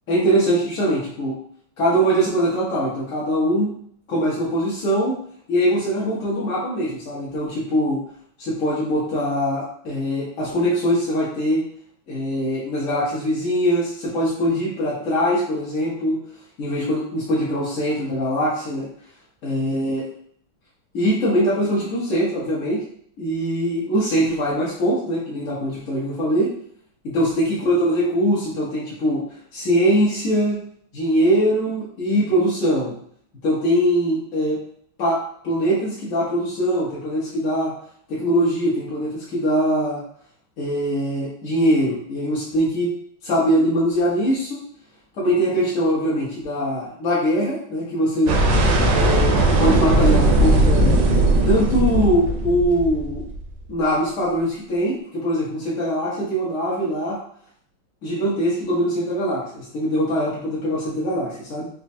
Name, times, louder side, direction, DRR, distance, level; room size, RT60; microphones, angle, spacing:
voice 1, 0.1-1.4 1.8-3.7 4.1-5.2 5.5-8.0 8.4-11.6 12.1-16.2 16.6-18.9 19.4-20.0 20.9-22.8 23.2-26.5 27.0-29.2 29.5-30.6 30.9-33.0 33.4-34.6 35.0-35.2 35.4-37.7 38.1-40.0 40.6-42.9 43.2-44.6 45.2-48.4 48.9-51.0 51.4-53.2 53.7-57.2 58.0-61.7, equal, 55° left, -7 dB, 0.9 m, -22 dB
sound 1, 48.3-53.4, right 1 dB, 70° right, 1.1 m, -18 dB
4.3 x 2.4 x 2.6 m, 0.62 s
omnidirectional pair, 2.4 m